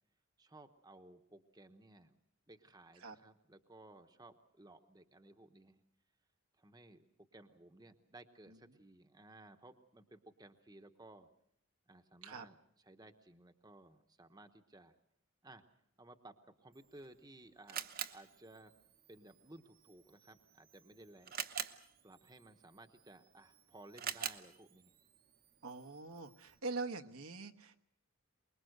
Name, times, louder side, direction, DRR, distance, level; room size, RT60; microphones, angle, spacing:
voice 1, 0.4-2.2 2.5-5.8 6.6-7.0 7.3-11.3 11.9-12.6 12.9-14.9 15.4-15.6 16.0-16.4 16.6-17.8 18.1-18.7 19.1-21.3 22.0-24.9, right 2 dB, 20° right, 7 dB, 1.0 m, -58 dB
Camera, 16.7-26.6, right 9 dB, 40° right, 0.9 m, -48 dB
voice 2, 25.6-27.8, right 3 dB, 75° right, 7 dB, 1.2 m, -43 dB
24.0 x 21.5 x 6.6 m, 0.72 s
head